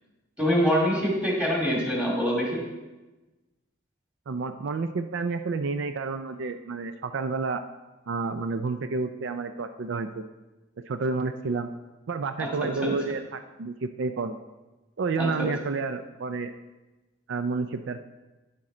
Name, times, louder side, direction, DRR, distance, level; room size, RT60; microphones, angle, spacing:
voice 1, 0.4-2.6 12.4-12.9 15.2-15.5, equal, 5° right, -3 dB, 2.4 m, -25 dB
voice 2, 4.3-7.6 8.1-10.2 10.9-11.7 12.1-14.4 15.0-16.5 17.3-18.0, right 4 dB, 70° right, 9 dB, 0.4 m, -30 dB
9.9 x 7.4 x 3.8 m, 1.1 s
head